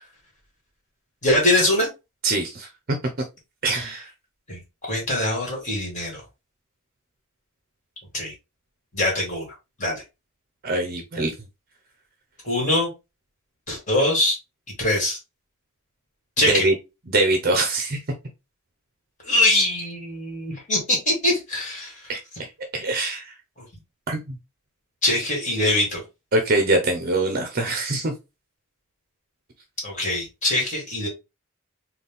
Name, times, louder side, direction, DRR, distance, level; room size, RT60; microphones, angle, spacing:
voice 1, 1.2-1.9 3.7-3.8 4.5-6.2 8.1-8.3 8.9-9.5 9.8-10.0 12.4-12.9 13.7-14.4 14.8-15.2 16.4-16.7 19.3-21.9 25.0-26.0 29.8-31.1, left 1 dB, 35° left, -1 dB, 2.0 m, -23 dB
voice 2, 2.2-3.0 3.6-4.1 10.6-11.3 16.4-16.7 17.1-18.0 22.1-22.2 22.7-23.3 24.1-24.4 26.3-28.1, right 2 dB, 45° right, 4 dB, 0.6 m, -23 dB
4.0 x 2.3 x 3.5 m, 0.25 s
head